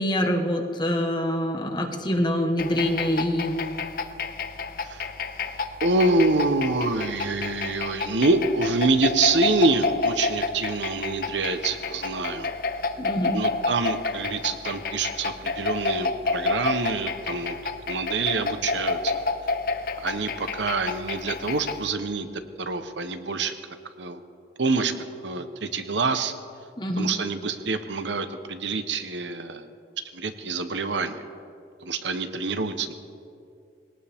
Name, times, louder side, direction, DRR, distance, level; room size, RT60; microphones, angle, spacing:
voice 1, 0.0-3.6 13.0-13.4 26.8-27.1, equal, 25° left, 3 dB, 1.4 m, -25 dB
sound 1, 2.6-21.9, left 4 dB, 50° left, 0.8 m, -30 dB
voice 2, 5.8-12.5 13.3-17.6 17.9-19.2 20.0-22.3 22.6-23.5 24.0-24.2 24.6-24.9 25.2-26.3 27.0-29.7 30.1-31.2 31.8-32.9, right 3 dB, 85° right, 9 dB, 1.0 m, -26 dB
22.0 x 18.5 x 3.6 m, 2.4 s
head